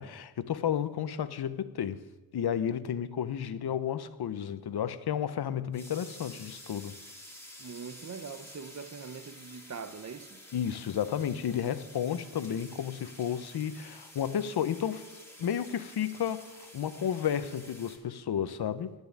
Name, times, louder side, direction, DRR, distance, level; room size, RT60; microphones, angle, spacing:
voice 1, 0.0-2.0 2.3-7.0 10.5-15.1 15.4-18.9, left 9 dB, 80° left, 0.9 m, -32 dB
sound 1, 5.7-18.0, left 1 dB, 5° left, 2.6 m, -50 dB
voice 2, 7.6-10.4, right 6 dB, 45° right, 1.0 m, -42 dB
10.5 x 9.6 x 9.6 m
wide cardioid pair, 110°, 38 cm